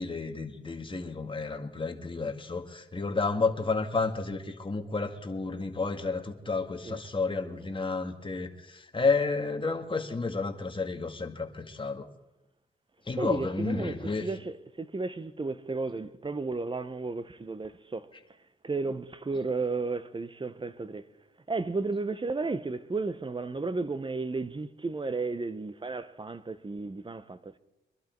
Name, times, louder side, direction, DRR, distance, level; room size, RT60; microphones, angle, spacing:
voice 1, 0.0-12.1 13.1-14.3, left 4 dB, 25° left, 1.9 m, -31 dB
voice 2, 13.2-18.1 18.6-21.0 21.5-27.6, right 3 dB, 25° right, 1.1 m, -33 dB
23.5 x 11.5 x 4.6 m
cardioid pair, 65°, 19 cm